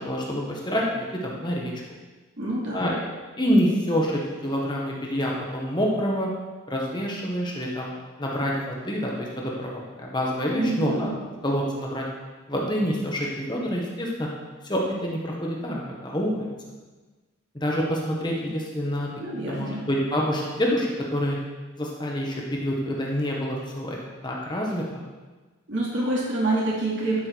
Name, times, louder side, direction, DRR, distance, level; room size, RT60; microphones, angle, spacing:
voice 1, 0.0-1.7 2.7-3.0 3.4-6.3 6.7-7.9 8.2-11.1 11.4-12.0 12.5-14.3 14.6-16.5 17.5-19.1 19.5-21.4 21.8-24.0 24.2-25.0, equal, 20° left, -2 dB, 1.5 m, -27 dB
voice 2, 2.4-2.9 10.5-11.1 19.2-19.8 25.7-27.3, right 2 dB, 60° right, -5 dB, 2.8 m, -27 dB
12.5 x 6.2 x 4.7 m, 1.3 s
head